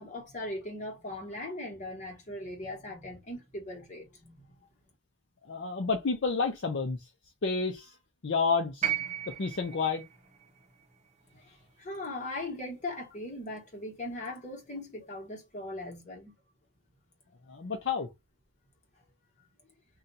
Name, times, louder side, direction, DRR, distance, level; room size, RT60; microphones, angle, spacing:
voice 1, 0.0-4.4 11.3-11.4 11.8-16.3 19.4-19.5, left 1 dB, 35° left, 1.3 m, -39 dB
voice 2, 5.5-7.0 7.4-7.9 8.2-8.9 9.4-10.0 17.5-18.1, left 4 dB, 60° left, 0.5 m, -29 dB
sound 1, 8.8-13.0 14.2-14.3, right 10 dB, 35° right, 0.8 m, -37 dB
2.7 x 2.3 x 3.9 m
head